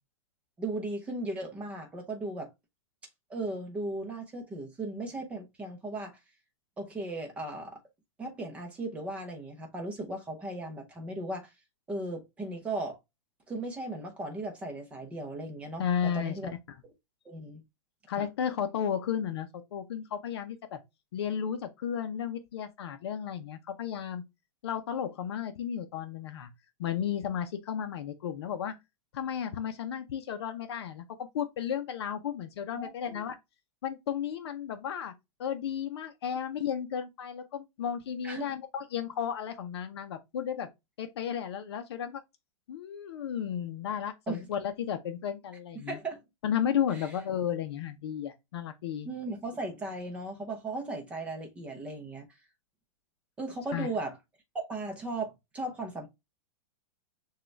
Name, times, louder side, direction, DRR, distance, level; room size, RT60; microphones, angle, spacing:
voice 1, 0.6-2.5 3.3-6.2 6.8-7.8 8.2-11.5 11.9-13.0 13.5-15.8 16.1-16.5 17.2-17.6 18.2-18.3 32.8-33.3 38.2-38.5 44.3-44.5 45.8-46.2 46.9-47.1 49.0-52.3 53.4-54.2 54.5-56.1, right 2 dB, 5° right, 0.7 m, -37 dB
voice 2, 15.8-16.4 18.1-20.8 21.1-24.2 24.6-26.5 26.8-28.7 29.1-31.0 31.3-33.4 33.8-35.1 35.4-40.7 41.0-42.2 42.7-46.0 46.4-49.1 53.7-53.9, left 8 dB, 50° left, 0.7 m, -33 dB
6.5 x 2.4 x 3.2 m
supercardioid pair, 180°, 18 cm